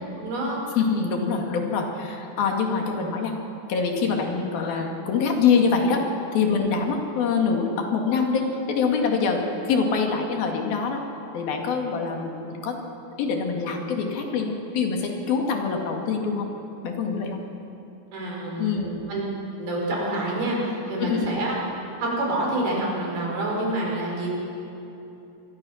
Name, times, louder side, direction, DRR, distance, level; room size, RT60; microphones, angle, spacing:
voice 1, 0.2-0.6 6.6-6.8 18.1-19.2 19.6-21.6 22.0-24.4, right 1 dB, 75° right, -2 dB, 6.8 m, -27 dB
voice 2, 0.8-3.4 3.7-6.0 6.3-11.0 11.3-12.7 13.2-16.5 16.8-17.4 18.6-19.0 21.0-21.4, left 5 dB, 70° left, 2 dB, 3.9 m, -24 dB
25.5 x 22.0 x 6.3 m, 2.9 s
omnidirectional pair, 4.4 m